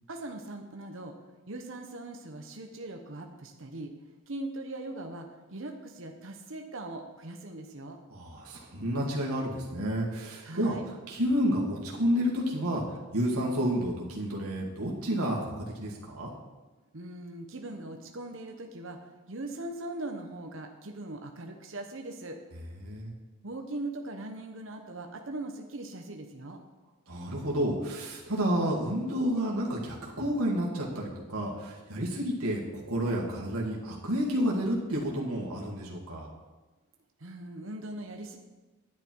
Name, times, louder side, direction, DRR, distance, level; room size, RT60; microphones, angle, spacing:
voice 1, 0.1-1.1 1.5-3.9 4.3-8.0 10.4-10.8 16.9-22.4 23.4-26.6 37.2-38.4, right 2 dB, 60° right, 3 dB, 1.0 m, -40 dB
voice 2, 8.1-10.7 11.1-12.8 13.1-16.3 22.8-23.1 27.1-36.3, equal, 85° right, -3 dB, 2.1 m, -30 dB
10.5 x 10.0 x 4.7 m, 1.2 s
head